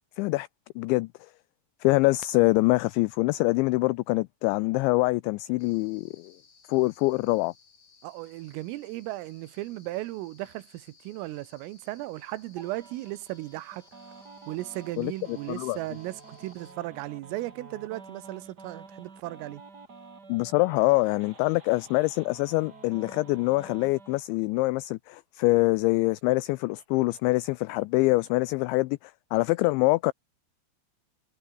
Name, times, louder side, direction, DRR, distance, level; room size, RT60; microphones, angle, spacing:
voice 1, 0.2-0.5 0.8-1.1 1.8-6.3 6.7-7.5 15.0-15.8 20.3-30.1, left 22 dB, 90° left, 2.6 m, -25 dB
sound 1, 5.6-16.7, left 5 dB, 35° left, 5.3 m, -59 dB
voice 2, 8.0-13.9 14.5-19.6, right 18 dB, 85° right, 3.7 m, -36 dB
sound 2, 12.6-24.2, right 4 dB, 25° right, 2.6 m, -49 dB
omnidirectional pair, 5.8 m